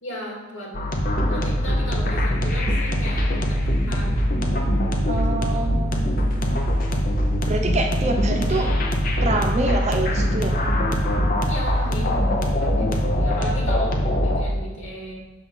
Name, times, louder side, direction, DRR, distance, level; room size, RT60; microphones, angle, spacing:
voice 1, 0.0-0.7 1.3-4.1 5.1-5.7 11.5-12.1 12.6-15.1, left 1 dB, 85° left, -3 dB, 2.2 m, -36 dB
sound 1, 0.7-14.4, equal, 45° left, 0.8 m, -22 dB
voice 2, 5.1-6.6 7.5-8.7 9.2-10.6, right 2 dB, 35° right, 3 dB, 0.7 m, -26 dB
6.6 x 3.7 x 5.6 m, 1.2 s
head